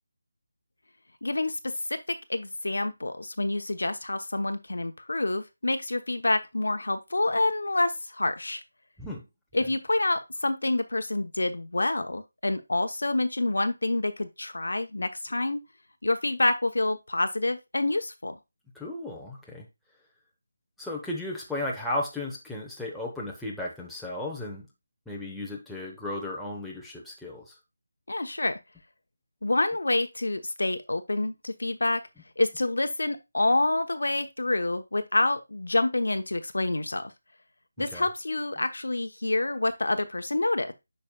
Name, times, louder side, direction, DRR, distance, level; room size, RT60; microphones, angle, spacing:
voice 1, 1.2-2.0 2.3-8.6 9.5-15.6 16.0-18.4 28.1-28.6 29.4-32.0 32.4-37.0 37.8-40.7, left 2 dB, 80° left, 8 dB, 1.0 m, -27 dB
voice 2, 18.7-19.6 20.8-24.7 25.1-27.5 37.8-38.1, left 1 dB, ahead, -5 dB, 1.0 m, -35 dB
8.7 x 5.4 x 2.3 m, 0.23 s
figure-of-eight pair, 165°, 0 cm